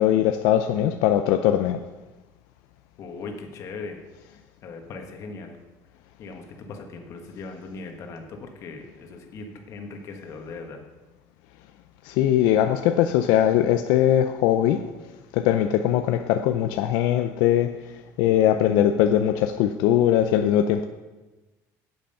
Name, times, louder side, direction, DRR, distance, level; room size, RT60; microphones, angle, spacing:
voice 1, 0.0-1.8 12.0-14.8 15.3-17.7 18.2-20.9, left 11 dB, 80° left, 7 dB, 0.5 m, -20 dB
voice 2, 3.0-4.0 4.2-5.6 6.2-10.8 18.3-18.8, left 4 dB, 45° left, 3 dB, 1.4 m, -39 dB
8.8 x 7.9 x 5.6 m, 1.2 s
cardioid pair, 150°, 7 cm